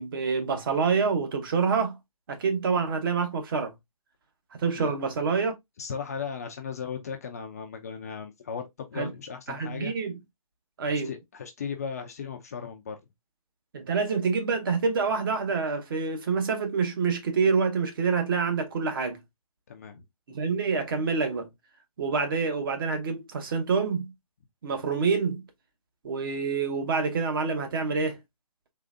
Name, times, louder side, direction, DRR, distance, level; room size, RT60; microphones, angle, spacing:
voice 1, 0.0-2.0 2.3-3.7 4.6-5.5 9.0-9.1 9.5-10.2 10.8-11.1 13.7-19.2 20.3-21.5 22.0-24.1 24.6-25.4 26.0-28.2, right 5 dB, 35° right, 0.9 m, -27 dB
voice 2, 5.8-9.9 10.9-13.0 19.7-20.0, left 6 dB, 25° left, 0.4 m, -36 dB
3.8 x 3.2 x 2.4 m
figure-of-eight pair, 145°, 19 cm